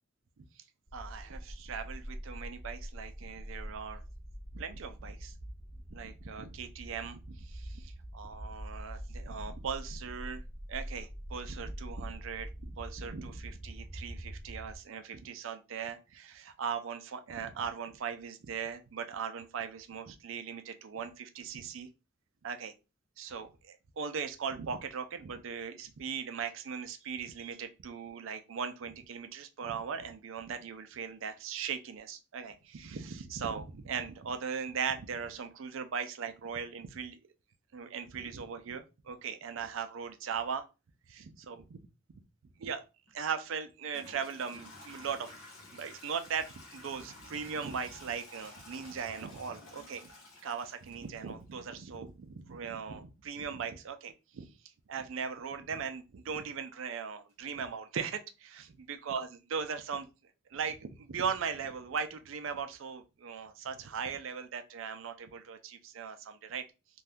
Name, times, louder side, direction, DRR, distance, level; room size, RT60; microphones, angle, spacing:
sound 1, 0.9-14.8, equal, 10° right, 0.4 m, -44 dB
voice 1, 0.9-4.0 4.5-5.3 5.9-10.4 10.7-21.9 22.4-22.7 23.2-37.2 37.7-40.6 41.1-41.8 42.6-42.8 43.1-45.3 45.7-50.1 50.4-54.5 54.9-60.1 60.5-66.6, right 6 dB, 75° right, 9 dB, 0.4 m, -39 dB
Toilet flush / Trickle dribble, 43.1-43.2 43.9-51.7, left 2 dB, 85° left, 1.0 m, -52 dB
2.6 x 2.3 x 3.4 m, 0.29 s
head